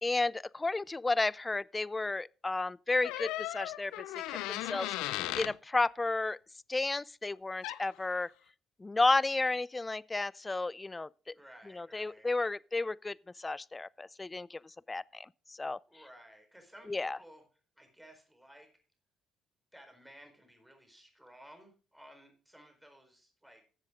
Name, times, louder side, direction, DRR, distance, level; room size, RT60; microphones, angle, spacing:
voice 1, 0.0-6.4 6.7-8.3 8.8-11.3 11.7-14.6 14.9-15.8 16.9-17.2, left 3 dB, 20° left, 0.4 m, -32 dB
sound 1, 3.0-5.6 7.6-7.8, left 16 dB, 85° left, 0.4 m, -36 dB
voice 2, 11.3-12.3 15.9-17.4 17.8-18.7 19.7-23.6, equal, 5° right, 4.3 m, -56 dB
13.5 x 7.6 x 3.7 m
supercardioid pair, 65°, 0 cm